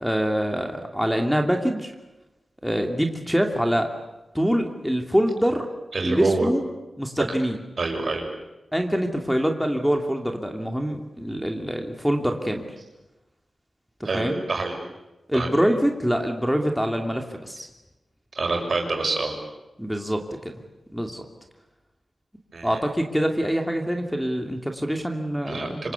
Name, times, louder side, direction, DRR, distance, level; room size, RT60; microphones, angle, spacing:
voice 1, 0.0-1.9 2.6-3.9 4.3-5.7 6.0-6.6 7.0-7.6 8.7-12.7 14.1-14.4 15.3-17.7 19.8-20.2 20.9-21.3 22.6-25.9, equal, ahead, 3 dB, 2.9 m, -25 dB
voice 2, 5.9-6.5 7.2-7.3 7.8-8.3 14.0-14.7 15.3-15.5 18.3-19.4 22.5-22.8 25.4-25.9, right 3 dB, 60° right, 3 dB, 6.5 m, -26 dB
27.0 x 25.5 x 8.3 m, 1.0 s
cardioid pair, 70°, 0 cm